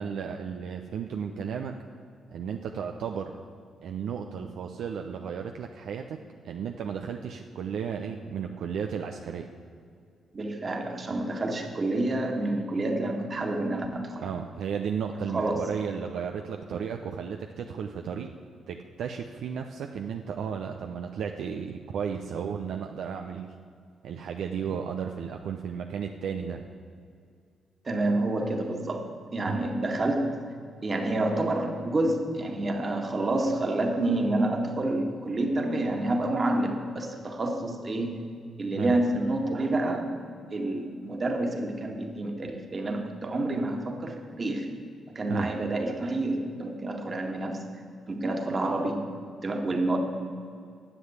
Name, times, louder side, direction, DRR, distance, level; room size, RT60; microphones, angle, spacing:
voice 1, 0.0-1.7 2.3-3.4 3.8-6.2 6.4-9.5 14.2-18.3 18.7-23.5 24.0-26.6 29.5-29.6 38.7-38.9 45.3-45.5, right 7 dB, 75° right, 3 dB, 0.6 m, -34 dB
voice 2, 10.3-14.2 15.3-15.6 27.8-30.4 30.8-38.2 38.6-40.1 40.5-44.7 45.2-47.6 48.1-49.0 49.4-50.0, right 2 dB, 40° right, 3 dB, 1.9 m, -28 dB
10.0 x 7.5 x 8.1 m, 2.3 s
supercardioid pair, 55°, 0 cm